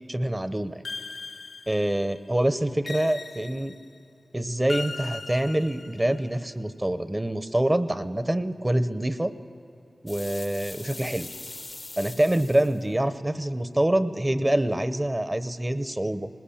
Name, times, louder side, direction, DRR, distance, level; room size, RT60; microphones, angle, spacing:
voice 1, 0.1-0.8 1.7-3.7 4.3-9.3 10.0-11.3 12.0-16.3, right 1 dB, 20° right, 12 dB, 0.9 m, -26 dB
sound 1, 0.9-2.2 2.9-4.0 4.7-6.2, left 3 dB, 70° left, 0.9 m, -39 dB
sound 2, 10.1-12.8, left 2 dB, 45° left, 0.8 m, -41 dB
20.0 x 20.0 x 8.6 m, 2.8 s
wide cardioid pair, 70°, 0 cm